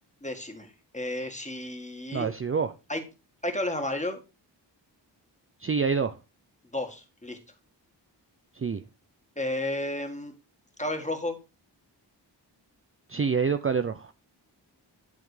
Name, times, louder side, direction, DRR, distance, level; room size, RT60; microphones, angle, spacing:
voice 1, 0.2-2.3 2.9-3.0 3.4-4.2 6.7-7.4 9.4-10.3 10.8-11.4, left 1 dB, 15° left, 1.8 m, -32 dB
voice 2, 2.1-2.7 5.6-6.1 8.6-8.8 13.1-14.1, right 5 dB, 30° right, 0.5 m, -27 dB
11.0 x 3.8 x 4.9 m
wide cardioid pair, 65°, 43 cm